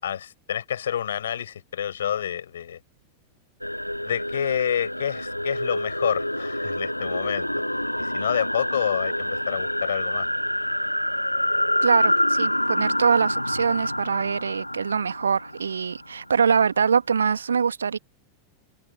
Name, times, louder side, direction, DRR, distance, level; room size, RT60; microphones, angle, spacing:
voice 1, 0.0-2.8 4.0-7.5 8.0-10.3, left 9 dB, 65° left, 7.1 m, -28 dB
sound 1, 3.6-16.3, left 1 dB, 90° left, 1.6 m, -27 dB
voice 2, 11.8-18.0, right 6 dB, 70° right, 1.5 m, -23 dB
figure-of-eight pair, 90°, 0 cm